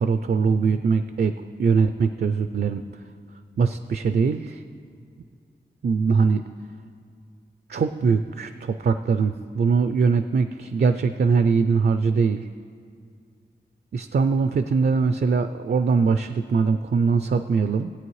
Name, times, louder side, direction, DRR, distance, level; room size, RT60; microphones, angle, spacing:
voice 1, 0.0-2.8 3.6-4.6 5.8-6.4 7.7-12.5 13.9-17.9, right 5 dB, 60° right, 9 dB, 0.4 m, -22 dB
17.5 x 8.6 x 3.2 m, 2.2 s
wide cardioid pair, 65°, 19 cm